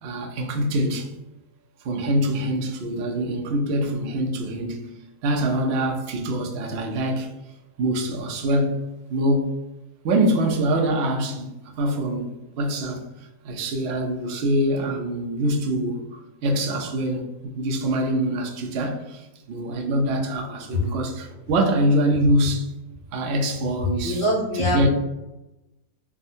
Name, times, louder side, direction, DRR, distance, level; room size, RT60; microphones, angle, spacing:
voice 1, 0.0-1.1 1.8-4.9 5.2-7.3 7.8-8.8 9.1-9.6 10.0-22.7 23.1-24.2 24.6-24.9, right 1 dB, 75° right, 0.6 m, -24 dB
voice 2, 24.0-24.9, left 1 dB, 60° left, 0.7 m, -23 dB
3.5 x 2.1 x 2.6 m
omnidirectional pair, 1.7 m